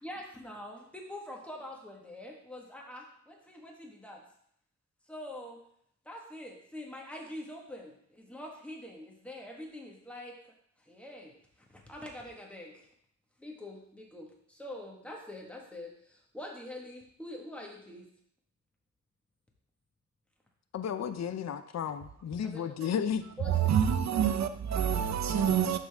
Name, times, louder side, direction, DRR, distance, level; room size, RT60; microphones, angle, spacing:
voice 1, 0.0-4.2 5.1-5.6 6.0-10.4 10.8-12.9 13.4-18.1 21.8-21.9 22.4-22.9 23.4-23.7, left 1 dB, 5° left, 1.5 m, -45 dB
voice 2, 20.7-23.2, left 8 dB, 65° left, 0.5 m, -33 dB
voice 3, 23.4-25.8, right 8 dB, 65° right, 0.6 m, -27 dB
11.5 x 3.9 x 3.5 m
wide cardioid pair, 120°, 29 cm